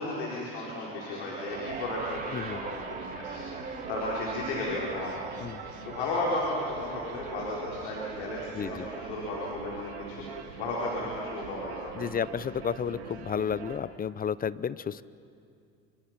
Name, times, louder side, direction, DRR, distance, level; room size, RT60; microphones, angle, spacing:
voice 1, 0.0-5.1 5.5-10.2 10.6-12.2, left 2 dB, 85° left, -4 dB, 4.3 m, -34 dB
sound 1, 0.9-11.4 12.4-12.5, right 4 dB, 25° right, 3.2 m, -43 dB
sound 2, 1.5-13.8, right 7 dB, 85° right, 2.2 m, -43 dB
voice 2, 8.5-8.9 11.9-15.0, left 7 dB, 25° left, 18 dB, 0.7 m, -32 dB
30.0 x 24.5 x 5.9 m, 2.5 s
hypercardioid pair, 75°, 32 cm